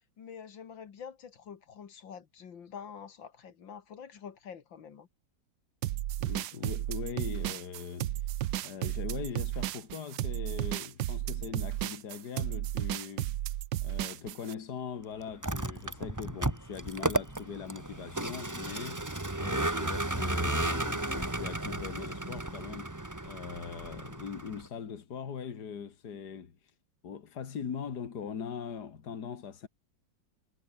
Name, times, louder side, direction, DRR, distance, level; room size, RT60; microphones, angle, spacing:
voice 1, 0.2-5.1, left 7 dB, 85° left, 2.6 m, -46 dB
sound 1, 5.8-14.5, right 14 dB, 80° right, 1.4 m, -33 dB
voice 2, 6.2-8.3 8.6-13.3 13.8-22.9 23.2-26.6 27.0-29.7, left 7 dB, 60° left, 2.4 m, -41 dB
Vehicle, 15.3-24.7, right 1 dB, 10° right, 1.5 m, -34 dB
omnidirectional pair, 2.0 m